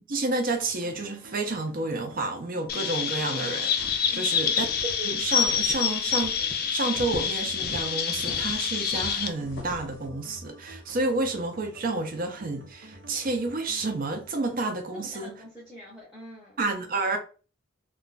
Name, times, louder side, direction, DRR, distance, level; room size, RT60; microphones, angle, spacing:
voice 1, 0.0-4.7 5.0-15.4 16.6-17.2, right 2 dB, 45° right, 0.6 m, -30 dB
sound 1, 0.6-15.7, right 1 dB, 80° right, 0.7 m, -49 dB
Chirp tweet, 2.7-9.3, left 7 dB, 50° left, 0.4 m, -27 dB
sound 2, 3.8-4.2 4.6-4.9 5.4-5.9 6.2-6.5 6.9-7.8 8.2-9.9, left 2 dB, 90° left, 0.9 m, -40 dB
voice 2, 4.1-4.5 14.9-16.6, equal, ahead, 0.8 m, -45 dB
2.4 x 2.2 x 3.9 m
head